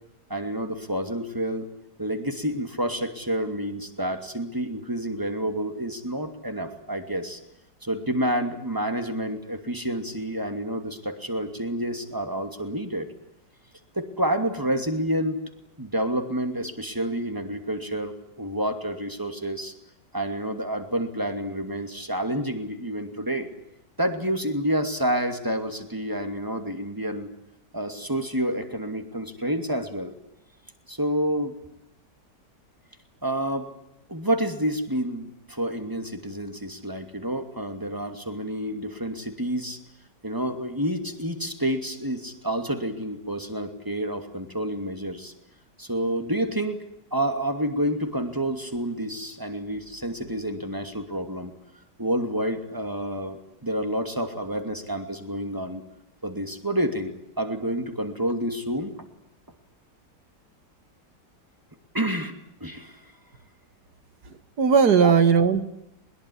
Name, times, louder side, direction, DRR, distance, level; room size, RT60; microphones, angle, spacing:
voice 1, 0.3-1.7 2.0-7.4 7.8-13.1 13.9-15.4 15.8-19.7 20.1-23.5 24.0-27.3 27.7-30.1 30.9-31.6 33.2-33.7 34.1-39.8 40.2-45.3 45.8-46.8 47.1-51.5 52.0-55.8 56.2-58.9 61.9-62.3 62.6-63.0 65.0-65.1, right 1 dB, 10° right, 7 dB, 2.6 m, -29 dB
voice 2, 64.3-65.6, right 6 dB, 65° right, 12 dB, 2.2 m, -18 dB
22.0 x 21.5 x 9.9 m, 0.82 s
omnidirectional pair, 1.9 m